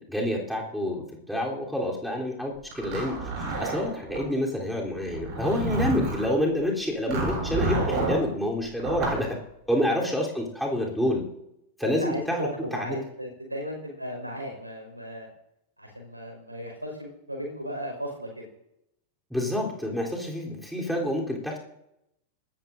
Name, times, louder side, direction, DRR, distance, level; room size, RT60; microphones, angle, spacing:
voice 1, 0.0-3.2 3.6-9.3 9.7-11.2 11.8-13.0 19.3-21.6, left 1 dB, ahead, -2 dB, 3.5 m, -28 dB
Zipper (clothing), 2.7-4.2 5.1-6.3 7.1-8.2 8.8-9.2, right 2 dB, 40° right, 6.9 m, -29 dB
voice 2, 11.8-15.3 15.8-18.5, equal, 85° right, 1 dB, 5.1 m, -36 dB
27.5 x 14.0 x 2.7 m, 0.84 s
figure-of-eight pair, 90°, 0 cm